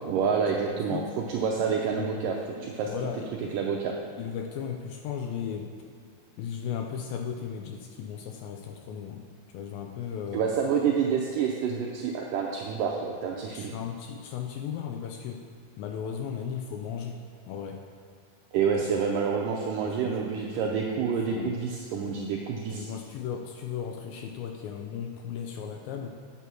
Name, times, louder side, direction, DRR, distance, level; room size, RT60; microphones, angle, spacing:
voice 1, 0.1-1.0 1.3-2.9 3.5-3.9 10.3-13.7 18.5-22.9, right 6 dB, 80° right, 0 dB, 1.9 m, -28 dB
voice 2, 1.7-2.3 2.6-3.6 4.2-5.7 6.4-9.2 9.5-10.5 13.5-15.4 15.8-17.2 17.5-17.8 18.8-18.9 19.9-20.6 21.3-21.6 22.7-26.1, left 8 dB, 80° left, 3 dB, 2.1 m, -36 dB
9.0 x 7.0 x 6.2 m, 2.3 s
omnidirectional pair, 4.6 m